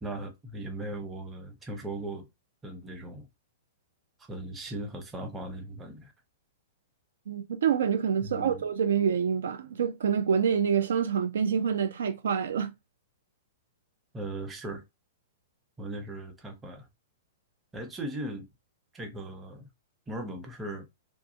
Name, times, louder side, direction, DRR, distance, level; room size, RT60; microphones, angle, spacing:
voice 1, 0.0-2.3 2.6-3.3 4.3-6.1 8.2-8.6 14.1-14.8 15.8-16.9 17.7-18.5 18.9-19.7 20.1-20.9, right 1 dB, 15° right, 0.9 m, -38 dB
voice 2, 7.3-12.7, right 7 dB, 65° right, 0.4 m, -27 dB
2.4 x 2.3 x 2.7 m
figure-of-eight pair, 105°, 0 cm